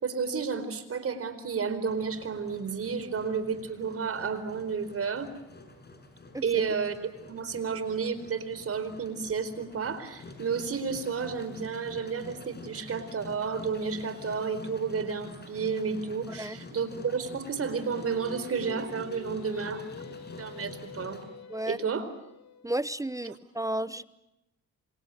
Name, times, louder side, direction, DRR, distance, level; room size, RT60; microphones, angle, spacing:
voice 1, 0.0-5.3 6.4-6.9 7.3-21.4 21.7-22.1 23.2-23.4, right 5 dB, 50° right, 12 dB, 4.4 m, -32 dB
Engine, 1.9-21.2, left 3 dB, 35° left, 6.9 m, -48 dB
voice 2, 16.3-16.6 21.5-21.8 22.6-24.0, right 1 dB, 10° right, 16 dB, 0.8 m, -32 dB
Singing, 17.6-22.7, left 7 dB, 60° left, 2.6 m, -46 dB
28.5 x 26.0 x 6.6 m, 0.90 s
cardioid pair, 90°, 30 cm